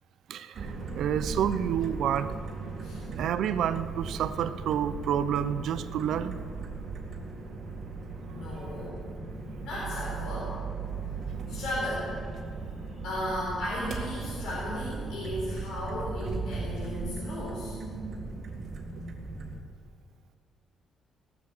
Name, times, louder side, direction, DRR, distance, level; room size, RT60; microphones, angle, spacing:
voice 1, 0.3-2.4 3.0-6.4, right 9 dB, 75° right, 12 dB, 0.6 m, -29 dB
sound 1, 0.5-19.6, right 4 dB, 45° right, 2.0 m, -37 dB
voice 2, 8.3-9.0 9.6-10.6 11.4-12.1 13.0-17.8, left 1 dB, 85° left, -7 dB, 4.2 m, -35 dB
17.5 x 7.3 x 7.7 m, 2.2 s
cardioid pair, 110°, 0 cm